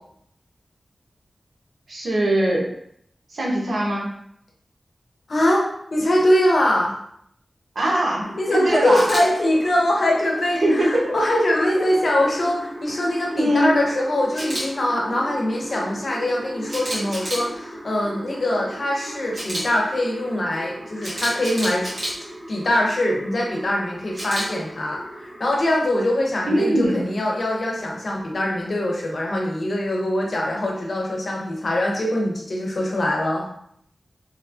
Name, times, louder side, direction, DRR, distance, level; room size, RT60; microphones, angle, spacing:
voice 1, 1.9-2.7 3.3-4.2 7.7-9.1 10.6-11.2 13.3-13.8 26.5-27.1, right 1 dB, 75° right, -3 dB, 0.8 m, -21 dB
voice 2, 5.3-7.0 8.4-21.8 22.5-33.5, left 1 dB, 65° left, -2 dB, 0.8 m, -22 dB
sound 1, 8.2-25.9, right 1 dB, 40° right, 0.6 m, -38 dB
Camera, 8.9-9.2 14.3-14.6 16.7-17.4 19.3-19.6 21.0-22.1 24.1-24.4, right 1 dB, 60° right, 1.3 m, -29 dB
3.0 x 2.2 x 2.5 m, 0.69 s
cardioid pair, 50°, 0 cm